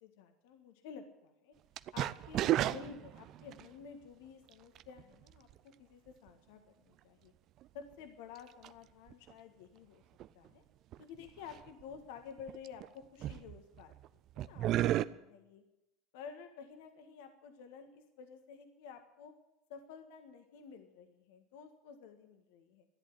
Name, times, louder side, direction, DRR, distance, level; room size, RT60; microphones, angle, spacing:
voice 1, 0.0-1.6 1.9-7.3 7.7-10.0 10.3-10.6 11.0-15.6 16.1-19.3 19.7-22.9, left 6 dB, 65° left, 7 dB, 1.7 m, -52 dB
sound 1, 1.8-3.7 4.8-5.0 5.5-5.6 7.6-7.7 8.6-8.7 9.1-9.3 10.2-10.3 10.9-11.0 11.3-11.8 12.4-12.9 13.2-14.1 14.4-15.0, right 13 dB, 50° right, 0.6 m, -33 dB
14.0 x 11.0 x 9.5 m, 0.90 s
hypercardioid pair, 75°, 0 cm